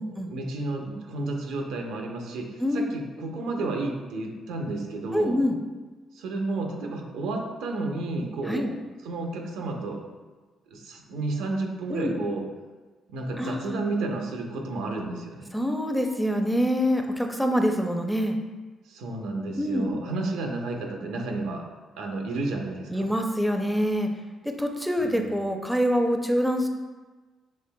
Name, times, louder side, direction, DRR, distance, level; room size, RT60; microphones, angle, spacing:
voice 1, 0.0-5.4 6.1-8.7 9.0-10.0 10.7-12.5 13.1-15.5 18.9-21.6 22.0-23.1 25.0-25.3, right 2 dB, 90° right, 2 dB, 0.7 m, -31 dB
voice 2, 2.6-2.9 5.1-5.6 8.5-8.7 11.9-12.2 13.4-13.8 15.5-18.4 19.6-19.9 22.9-24.1 24.4-26.7, equal, ahead, 4 dB, 0.5 m, -25 dB
6.4 x 3.4 x 2.2 m, 1.3 s
cardioid pair, 90°, 0 cm